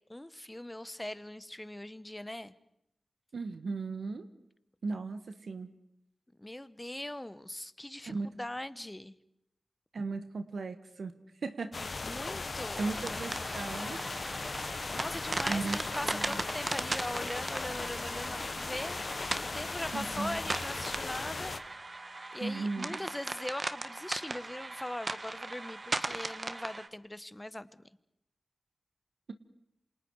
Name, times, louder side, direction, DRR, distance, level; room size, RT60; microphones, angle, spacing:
voice 1, 0.1-2.5 6.4-9.1 12.0-12.8 14.9-19.0 19.4-21.5 22.3-27.8, left 1 dB, 15° left, 15 dB, 1.3 m, -40 dB
voice 2, 3.3-4.2 4.8-5.7 8.1-8.4 9.9-12.2 12.8-14.0 15.5-16.4 19.9-20.4 22.4-23.0, right 3 dB, 75° right, 9 dB, 1.6 m, -37 dB
sound 1, 11.7-21.6, left 3 dB, 55° left, 1.7 m, -38 dB
sound 2, 12.8-26.9, right 2 dB, 45° right, 1.5 m, -39 dB
sound 3, 13.9-14.6 15.1-15.4 15.7-16.0 16.3-16.4 16.8-17.1 17.4-17.7 18.1-18.2 18.4-18.7 19.0-19.3 19.8-21.0, left 2 dB, 30° left, 3.2 m, -49 dB
28.5 x 27.0 x 4.9 m, 0.80 s
cardioid pair, 55°, 0 cm